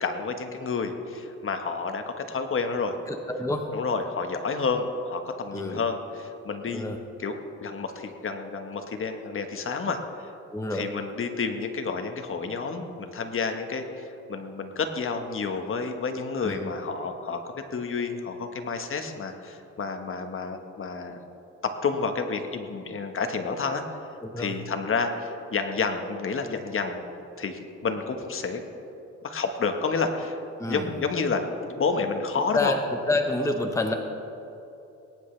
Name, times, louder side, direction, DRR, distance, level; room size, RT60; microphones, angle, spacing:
voice 1, 0.0-3.0 3.7-6.9 7.2-7.3 7.6-10.3 10.7-21.2 21.6-24.0 24.4-27.0 27.4-28.6 29.2-30.4 30.7-32.7, left 4 dB, 45° left, 6 dB, 1.3 m, -30 dB
voice 2, 3.1-3.7 5.5-5.8 6.7-7.0 10.5-10.9 16.4-16.6 24.2-24.6 30.6-30.9 32.5-32.8 33.1-33.9, left 2 dB, 10° left, 4 dB, 1.0 m, -28 dB
21.5 x 10.5 x 3.3 m, 2.8 s
cardioid pair, 90°, 30 cm